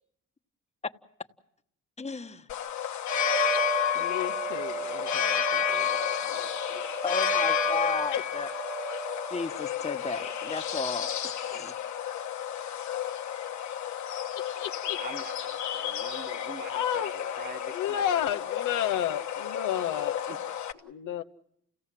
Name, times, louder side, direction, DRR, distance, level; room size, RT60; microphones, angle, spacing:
voice 1, 2.0-2.5 7.0-8.5 9.3-11.7, left 4 dB, 20° left, 1.2 m, -34 dB
sound 1, 2.5-20.7, left 6 dB, 70° left, 1.4 m, -31 dB
voice 2, 3.9-7.3 8.1-8.2 14.4-15.0 16.7-17.4 17.7-20.2 20.8-21.2, left 10 dB, 90° left, 1.1 m, -33 dB
voice 3, 15.0-17.1 17.4-18.1 20.3-20.4, right 4 dB, 35° right, 1.5 m, -44 dB
29.5 x 17.0 x 7.6 m
cardioid pair, 90°, 30 cm